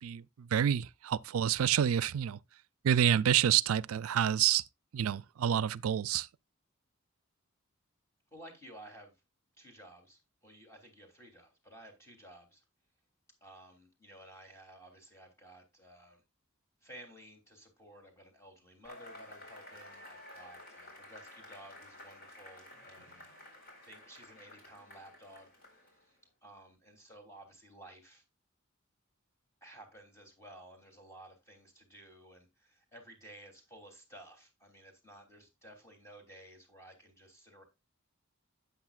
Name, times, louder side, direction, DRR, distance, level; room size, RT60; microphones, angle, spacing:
voice 1, 0.0-2.4 2.8-4.6 4.9-6.3, right 9 dB, 90° right, 0.4 m, -28 dB
voice 2, 8.3-9.1 9.6-12.6 13.4-16.2 16.8-23.3 23.8-25.5 25.8-28.2 29.6-37.6, right 1 dB, 15° left, 3.0 m, -54 dB
Cheering / Applause / Crowd, 18.8-26.1, left 1 dB, 50° left, 4.4 m, -52 dB
12.0 x 8.2 x 2.4 m
head